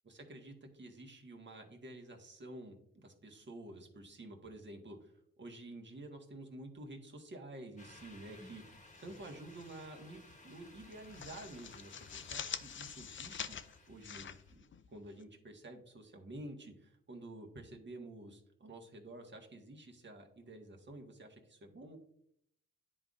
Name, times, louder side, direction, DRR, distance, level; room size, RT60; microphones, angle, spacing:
voice 1, 0.0-13.6 13.9-22.0, right 1 dB, 40° right, 2 dB, 1.5 m, -50 dB
sound 1, 7.8-14.5, left 2 dB, 25° left, 1.4 m, -59 dB
sound 2, 9.0-9.8 10.1-10.3 10.7-15.2, left 8 dB, 40° left, 0.5 m, -46 dB
10.5 x 3.9 x 2.5 m, 0.72 s
supercardioid pair, 55°, 30 cm